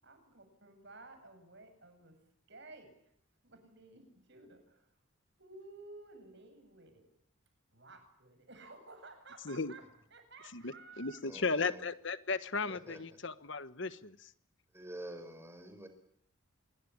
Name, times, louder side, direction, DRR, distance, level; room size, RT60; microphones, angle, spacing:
voice 1, 0.0-2.1 2.5-2.9 3.4-4.9 5.4-7.0 7.7-9.8 10.1-11.2, right 2 dB, 50° right, 7.9 m, -54 dB
voice 2, 10.5-14.3, left 4 dB, 55° left, 1.2 m, -36 dB
voice 3, 11.2-11.8 12.7-13.0 14.7-15.9, right 1 dB, 10° right, 5.2 m, -47 dB
27.0 x 23.0 x 8.7 m
head